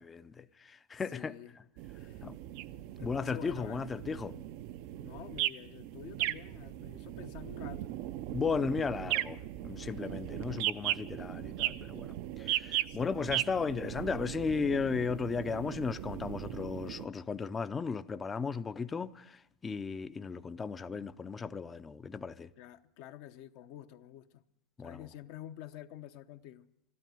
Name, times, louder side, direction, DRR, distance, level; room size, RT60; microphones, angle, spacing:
voice 1, 0.0-1.3 2.2-2.4 3.0-4.4 8.3-22.5 24.8-25.0, left 5 dB, 20° left, 0.5 m, -35 dB
voice 2, 1.1-1.6 2.0-2.3 3.0-3.9 4.9-7.9 12.9-13.2 22.6-24.4 24.8-26.7, left 12 dB, 65° left, 0.8 m, -49 dB
sound 1, 1.8-17.1, right 14 dB, 60° right, 0.5 m, -38 dB
12.5 x 12.0 x 9.2 m
supercardioid pair, 115°, 0 cm